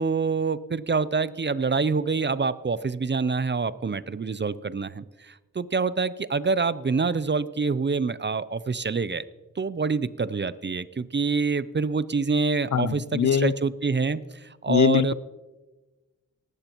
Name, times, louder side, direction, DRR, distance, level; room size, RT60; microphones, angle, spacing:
voice 1, 0.0-9.2 9.6-14.2 14.6-15.1, right 4 dB, 35° right, 16 dB, 0.5 m, -26 dB
voice 2, 12.7-13.5 14.7-15.1, left 8 dB, 65° left, 19 dB, 0.4 m, -22 dB
18.5 x 15.0 x 3.0 m, 1.2 s
wide cardioid pair, 90°, 32 cm